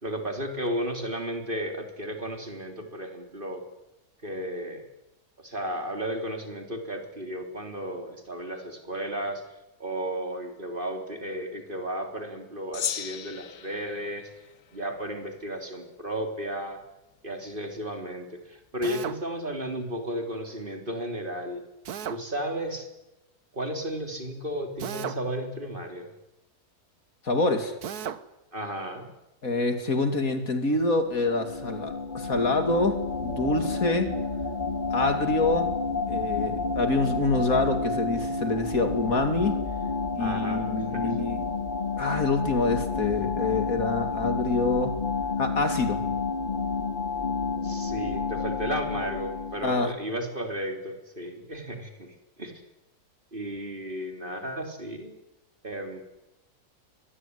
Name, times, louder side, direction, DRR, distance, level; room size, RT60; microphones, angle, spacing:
voice 1, 0.0-3.6 4.2-4.8 5.4-9.4 9.8-14.3 14.7-16.8 17.2-21.6 22.1-22.9 23.5-26.1 28.5-29.1 40.2-41.1 47.6-52.5 53.3-55.2 55.6-56.0, right 1 dB, 30° right, 5 dB, 3.8 m, -34 dB
Gong, 12.7-15.4, left 8 dB, 90° left, 1.7 m, -37 dB
Drill, 18.8-19.2 21.8-22.2 24.8-25.2 27.8-28.2, right 8 dB, 75° right, 1.6 m, -34 dB
voice 2, 27.2-27.7 29.4-34.1 34.9-35.7 36.1-39.5 40.2-41.4 42.0-45.0 45.4-46.0 49.6-49.9, left 3 dB, 60° left, 8 dB, 3.1 m, -26 dB
sound 1, 31.0-50.0, left 4 dB, 30° left, 2.3 m, -30 dB
24.5 x 20.5 x 9.7 m, 0.96 s
omnidirectional pair, 1.7 m